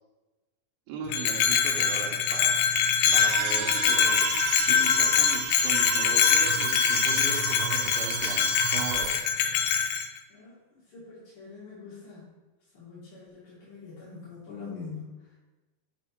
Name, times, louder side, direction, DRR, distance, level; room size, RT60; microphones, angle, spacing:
voice 1, 0.9-2.6 3.1-4.3 4.7-9.3, right 6 dB, 70° right, -1 dB, 2.3 m, -38 dB
Bell, 1.1-10.1, left 7 dB, 85° left, 2.5 m, -24 dB
sound 1, 3.0-9.2, right 10 dB, 90° right, 3.1 m, -33 dB
voice 2, 10.3-12.3 12.7-15.4, left 5 dB, 55° left, -9 dB, 1.5 m, -44 dB
6.6 x 5.4 x 4.5 m, 1.1 s
omnidirectional pair, 5.5 m